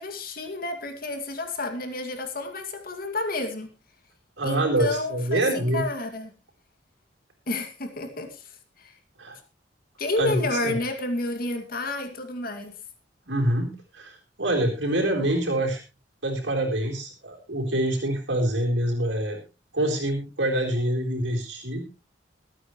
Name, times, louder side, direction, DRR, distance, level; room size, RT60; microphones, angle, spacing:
voice 1, 0.0-3.7 4.4-6.3 7.5-8.5 8.8-8.9 10.0-12.8, left 2 dB, 55° left, 2.3 m, -30 dB
voice 2, 4.4-5.8 9.2-9.4 10.2-10.7 13.3-15.8 16.2-19.4 19.7-21.9, right 1 dB, 90° right, 4.0 m, -26 dB
23.0 x 9.1 x 3.1 m
head